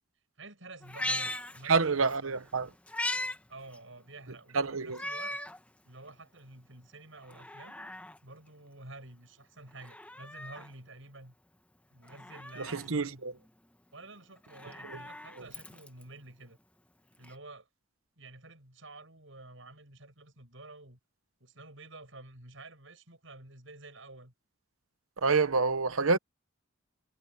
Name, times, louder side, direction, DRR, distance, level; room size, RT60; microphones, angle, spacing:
voice 1, 0.4-2.4 3.5-5.4 5.8-7.8 8.2-11.3 11.9-13.2 13.9-16.6 17.2-17.7 18.2-21.0 21.4-24.3, right 2 dB, 70° right, 7.9 m, -50 dB
Meow, 0.8-2.2 2.5-3.4 3.7-3.8 4.9-5.6 6.1-6.2 7.2-8.2 9.7-10.7 12.1-12.9 14.4-16.0 17.2-17.3, left 1 dB, 5° left, 1.0 m, -38 dB
voice 2, 1.6-2.7 4.5-5.0 12.6-13.3 25.2-26.2, right 4 dB, 85° right, 1.0 m, -27 dB
head